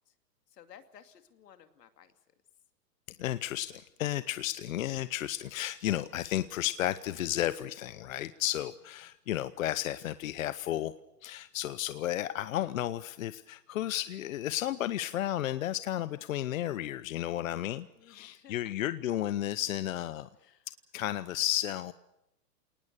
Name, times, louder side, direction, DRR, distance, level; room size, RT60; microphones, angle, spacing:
voice 1, 0.5-2.1 18.0-18.7 20.4-20.7, left 9 dB, 75° left, 9 dB, 2.7 m, -56 dB
voice 2, 3.2-10.9 11.2-20.3 20.9-21.9, left 13 dB, 55° left, 14 dB, 0.8 m, -33 dB
28.0 x 19.0 x 6.8 m, 0.88 s
hypercardioid pair, 160°, 49 cm